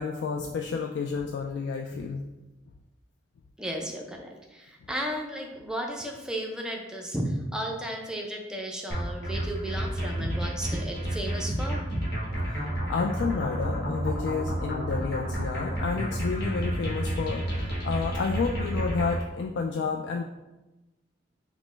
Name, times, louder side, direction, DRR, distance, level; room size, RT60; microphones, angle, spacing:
voice 1, 0.0-2.3 12.4-20.2, left 5 dB, 80° left, 2 dB, 0.3 m, -30 dB
voice 2, 3.6-11.8, equal, 5° right, 1 dB, 0.4 m, -34 dB
sound 1, 8.9-19.2, right 1 dB, 65° left, 1.2 m, -30 dB
5.1 x 2.1 x 3.2 m, 1.0 s
head